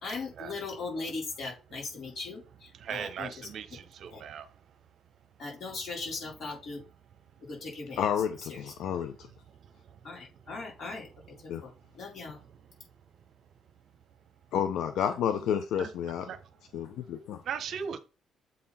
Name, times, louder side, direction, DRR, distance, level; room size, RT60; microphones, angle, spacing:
voice 1, 0.0-3.5 4.1-4.2 5.4-6.8 7.4-8.0 8.4-8.7 10.0-11.1 11.4-11.7 12.0-12.4, left 3 dB, 55° left, 4.1 m, -39 dB
voice 2, 2.8-4.5 15.8-15.9 16.3-16.4 17.5-18.0, right 7 dB, 60° right, 0.8 m, -37 dB
voice 3, 8.0-9.3 11.5-11.6 14.5-16.3 16.7-17.4, left 8 dB, 80° left, 0.6 m, -30 dB
7.5 x 3.9 x 4.2 m
cardioid pair, 110°, 0 cm